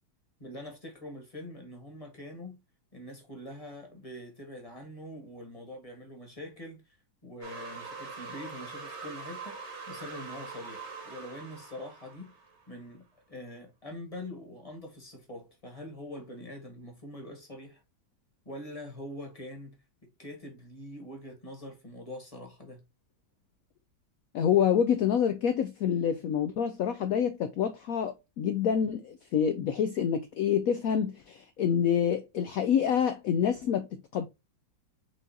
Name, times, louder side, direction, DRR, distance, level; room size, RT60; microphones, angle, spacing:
voice 1, 0.4-2.6 2.9-7.0 7.2-12.3 12.7-17.8 18.4-19.8 20.2-22.8, left 1 dB, 20° left, 1.2 m, -44 dB
sound 1, 7.4-12.7, right 4 dB, 40° right, 1.3 m, -43 dB
voice 2, 24.3-34.3, left 8 dB, 80° left, 0.7 m, -27 dB
4.9 x 3.8 x 2.6 m
omnidirectional pair, 2.0 m